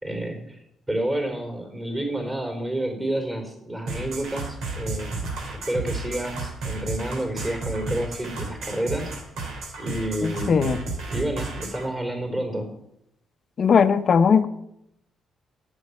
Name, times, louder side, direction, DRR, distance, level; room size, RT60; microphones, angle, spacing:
voice 1, 0.0-0.6 0.9-5.2 5.7-9.1 9.8-10.6 11.1-12.7, right 1 dB, 20° right, 2 dB, 4.1 m, -29 dB
sound 1, 3.9-11.9, right 3 dB, 80° right, 3.0 m, -32 dB
voice 2, 10.2-10.8 13.6-14.5, left 6 dB, 50° left, 11 dB, 0.8 m, -19 dB
8.1 x 8.1 x 8.7 m, 0.80 s
cardioid pair, 90°, 0 cm